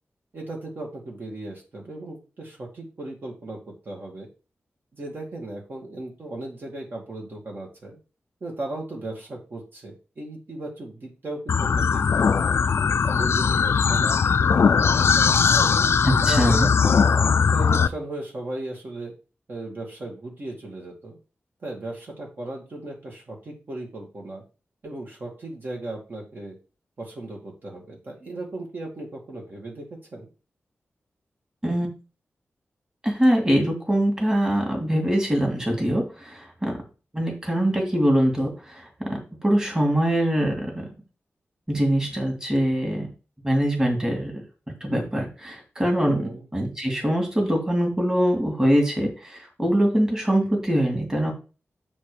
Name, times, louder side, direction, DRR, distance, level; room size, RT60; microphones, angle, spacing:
voice 1, 0.3-4.3 4.9-8.0 8.4-12.5 13.0-15.8 16.2-17.1 17.5-19.1 19.5-21.2 21.6-24.4 24.8-26.6 27.0-29.9 30.1-30.3 46.0-46.5, right 2 dB, 45° right, -1 dB, 2.1 m, -36 dB
sound 1, 11.5-17.9, left 6 dB, 65° left, 0.4 m, -20 dB
voice 2, 16.0-16.7 31.6-31.9 33.0-36.8 37.1-40.9 41.7-43.1 43.4-44.3 44.8-51.3, equal, 15° right, 1 dB, 2.3 m, -23 dB
7.6 x 4.4 x 5.0 m, 0.33 s
wide cardioid pair, 165°, 5 cm